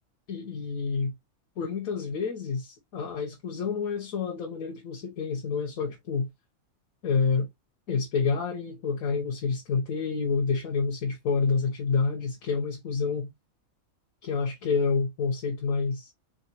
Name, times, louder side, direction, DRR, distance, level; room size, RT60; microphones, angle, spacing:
voice 1, 0.3-1.1 1.6-6.3 7.0-7.5 7.9-13.3 14.2-16.1, left 5 dB, 80° left, 1.4 m, -28 dB
4.0 x 3.9 x 2.9 m
omnidirectional pair, 1.5 m